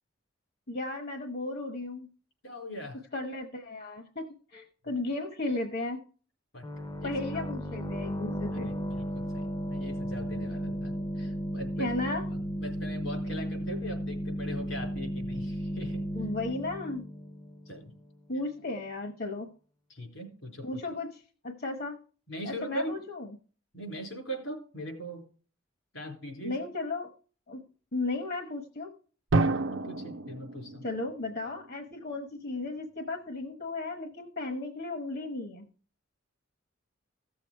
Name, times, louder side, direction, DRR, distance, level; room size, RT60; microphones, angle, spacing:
voice 1, 0.7-2.1 3.1-4.2 4.5-6.0 7.0-8.7 11.8-12.2 16.1-17.1 18.3-19.5 20.6-22.0 22.4-23.4 26.4-27.1 27.5-27.6 27.9-28.9 30.8-35.7, left 2 dB, 55° left, 4 dB, 1.2 m, -35 dB
voice 2, 2.4-3.0 6.5-7.4 8.5-16.0 17.7-17.9 19.9-20.6 22.3-23.0 23.7-25.2 25.9-26.5 29.4-30.9, equal, 80° left, 2 dB, 4.2 m, -40 dB
sound 1, 6.6-18.1, equal, 20° left, 0.7 m, -35 dB
Drum, 29.3-32.0, right 2 dB, 80° right, 0.7 m, -30 dB
15.5 x 7.0 x 4.6 m, 0.41 s
head